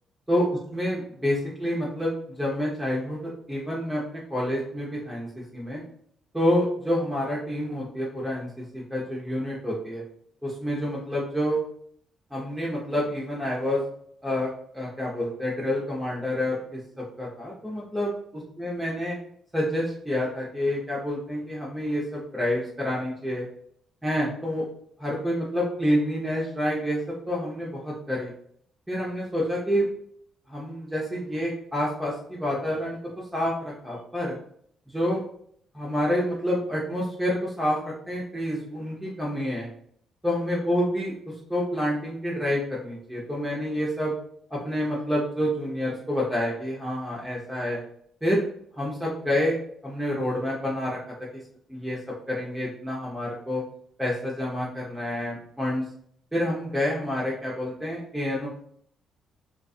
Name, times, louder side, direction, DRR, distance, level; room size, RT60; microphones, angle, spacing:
voice 1, 0.3-5.8 6.3-10.0 10.4-11.6 12.3-13.8 14.2-19.2 19.5-23.5 24.0-24.7 25.0-27.0 27.3-28.3 28.9-29.9 30.5-33.0 33.3-34.4 34.9-35.2 35.7-39.7 40.2-41.1 41.5-44.1 44.5-47.8 48.2-48.5 48.8-51.0 51.7-52.0 52.3-53.6 54.0-55.8 56.3-58.5, equal, 10° right, -5 dB, 0.7 m, -28 dB
2.4 x 2.3 x 2.4 m, 0.63 s
hypercardioid pair, 45°, 0 cm